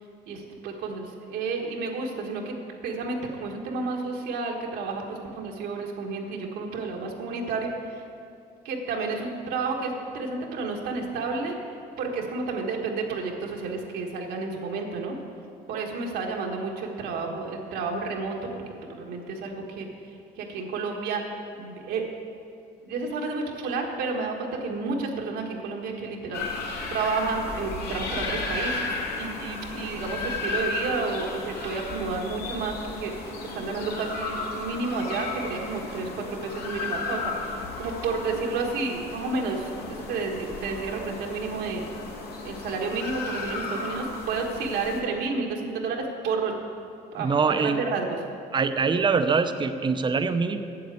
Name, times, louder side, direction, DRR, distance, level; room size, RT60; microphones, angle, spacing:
voice 1, 0.3-2.5 2.8-8.0 8.7-11.6 12.0-15.2 15.7-18.6 18.9-19.9 20.4-21.2 21.6-22.1 22.8-26.5 26.9-28.9 29.2-41.9 42.4-46.5 47.1-48.2, right 4 dB, 80° right, 0 dB, 1.7 m, -31 dB
sound 1, 26.3-45.0, left 3 dB, 70° left, 1.8 m, -34 dB
voice 2, 47.2-47.8 48.5-50.6, right 5 dB, 30° right, 9 dB, 0.6 m, -23 dB
8.6 x 7.4 x 8.3 m, 2.5 s
cardioid pair, 110°, 17 cm